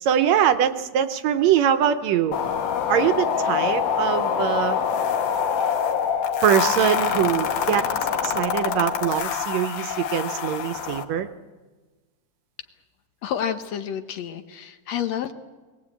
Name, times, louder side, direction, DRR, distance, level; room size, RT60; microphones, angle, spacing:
voice 1, 0.0-2.4 2.9-4.8 6.4-7.9 8.2-11.3, right 9 dB, 70° right, 10 dB, 1.9 m, -22 dB
sound 1, 2.3-11.0, left 7 dB, 85° left, 2.9 m, -25 dB
voice 2, 13.2-15.3, left 9 dB, 65° left, 8 dB, 2.0 m, -29 dB
21.0 x 18.5 x 8.4 m, 1.3 s
omnidirectional pair, 3.5 m